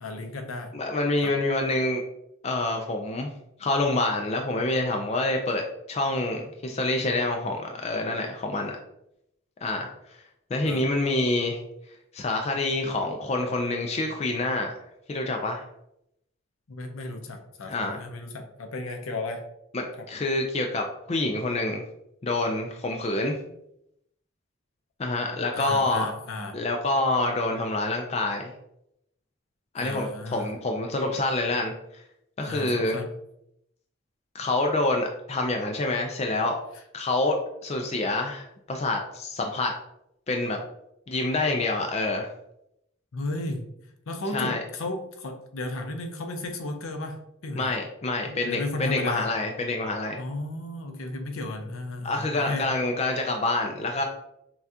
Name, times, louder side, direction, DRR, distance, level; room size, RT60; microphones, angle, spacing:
voice 1, 0.0-0.7 1.2-1.3 10.6-10.8 16.7-19.4 20.0-20.1 25.5-26.6 29.8-30.5 32.5-33.1 43.1-43.6 44.1-47.7 48.3-49.3 50.2-52.7, left 2 dB, 75° left, 5 dB, 0.6 m, -34 dB
voice 2, 0.7-2.0 2.4-3.3 3.6-8.8 9.6-9.9 10.5-11.6 12.1-14.7 15.1-15.6 17.7-18.0 19.7-21.8 22.2-23.4 25.0-26.1 26.5-28.5 29.7-32.0 32.4-33.0 34.3-36.6 36.9-39.7 40.3-40.6 41.1-42.3 44.3-44.6 47.6-50.2 52.0-54.0, left 2 dB, 30° left, 3 dB, 0.3 m, -27 dB
5.7 x 2.3 x 2.7 m, 0.78 s
head